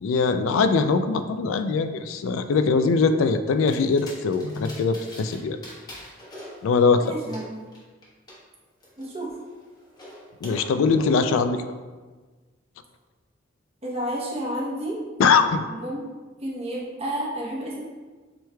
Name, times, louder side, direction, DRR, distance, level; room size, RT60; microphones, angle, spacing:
voice 1, 0.0-5.6 6.6-7.0 10.4-11.7 15.2-15.6, left 4 dB, 80° left, 10 dB, 0.3 m, -22 dB
sound 1, 3.7-5.4 5.6-8.4 8.8-10.6, left 1 dB, 20° left, 0.9 m, -44 dB
voice 2, 7.0-7.6 9.0-9.4 13.8-15.0 15.7-16.0 16.4-17.8, right 1 dB, 30° right, -4 dB, 0.9 m, -31 dB
7.6 x 3.1 x 2.2 m, 1.3 s
head